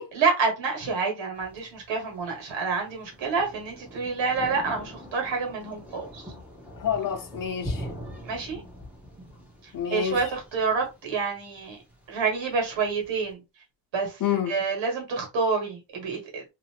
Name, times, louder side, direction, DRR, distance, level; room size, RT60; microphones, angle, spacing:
voice 1, 0.1-6.2 8.2-8.6 9.9-11.8 12.1-13.4 13.9-14.2 14.5-16.4, right 4 dB, 85° right, 1.6 m, -28 dB
Thunder, 1.4-13.3, equal, 5° right, 0.9 m, -43 dB
voice 2, 6.8-7.9 8.5-8.6 9.7-10.3 14.2-14.5, left 9 dB, 50° left, 0.8 m, -28 dB
2.9 x 2.6 x 2.8 m
wide cardioid pair, 150°, 44 cm